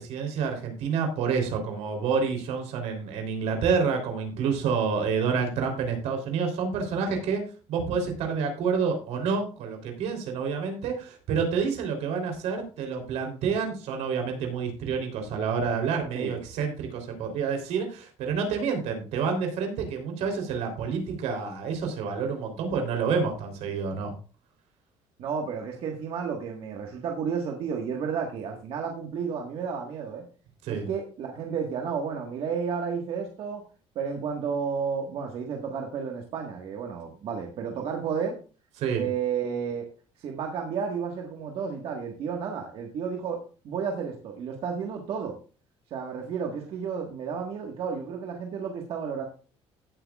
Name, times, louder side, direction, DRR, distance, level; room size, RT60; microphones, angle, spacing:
voice 1, 0.0-24.1 30.6-30.9 38.8-39.0, right 5 dB, 80° right, 4 dB, 3.4 m, -28 dB
voice 2, 25.2-30.2 30.7-33.6 33.9-38.4 38.9-39.9 40.2-45.3 45.9-49.3, right 6 dB, 55° right, 1 dB, 1.5 m, -32 dB
16.5 x 8.1 x 2.4 m, 0.36 s
cardioid pair, 160°, 11 cm